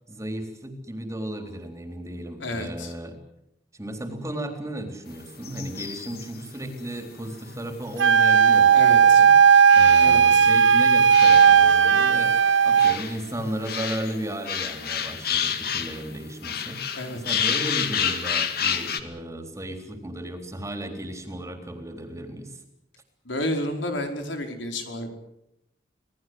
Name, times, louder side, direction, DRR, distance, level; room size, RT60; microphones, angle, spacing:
voice 1, 0.1-3.2 3.7-9.3 9.7-22.6, right 1 dB, 15° right, 5 dB, 3.7 m, -35 dB
voice 2, 2.4-2.9 8.7-9.2 9.5-9.6 10.0-10.5 16.9-17.4 23.2-25.1, left 1 dB, 85° left, 4 dB, 4.7 m, -31 dB
sound 1, 5.4-6.4 6.9-7.0 7.3-7.4 8.9-9.0 9.7-10.7 11.1-11.7 12.3-16.2 16.4-19.0, left 8 dB, 55° left, 2.2 m, -29 dB
Wind instrument woodwind instrument, 8.0-13.0, right 7 dB, 90° right, 0.8 m, -16 dB
27.0 x 19.0 x 7.9 m, 0.81 s
head